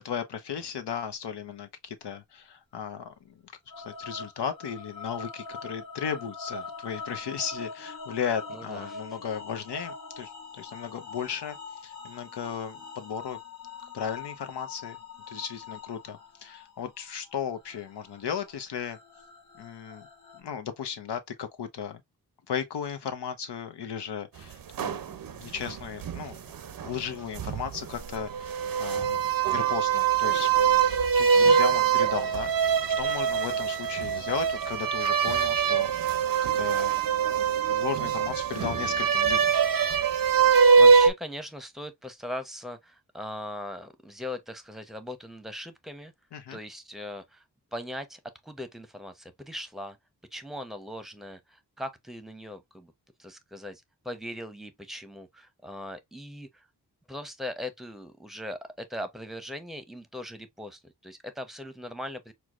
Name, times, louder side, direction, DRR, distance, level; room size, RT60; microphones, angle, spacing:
voice 1, 0.0-11.6 11.8-13.4 13.9-15.0 15.3-19.0 19.6-20.1 20.3-22.0 22.5-25.0 25.3-26.4 26.8-29.2 29.5-30.8 31.2-36.9 37.7-39.5 46.3-46.6, left 8 dB, 85° left, 0.8 m, -35 dB
sound 1, 3.7-20.4, left 4 dB, 65° left, 1.2 m, -43 dB
voice 2, 8.5-9.0 40.4-46.1 46.5-47.4 47.7-50.0 50.3-52.9 53.2-56.7 57.1-62.3, left 1 dB, ahead, 0.7 m, -40 dB
sound 2, 24.5-27.1 27.3-41.1, right 6 dB, 55° right, 0.6 m, -23 dB
4.5 x 2.1 x 2.4 m
cardioid pair, 50°, 40 cm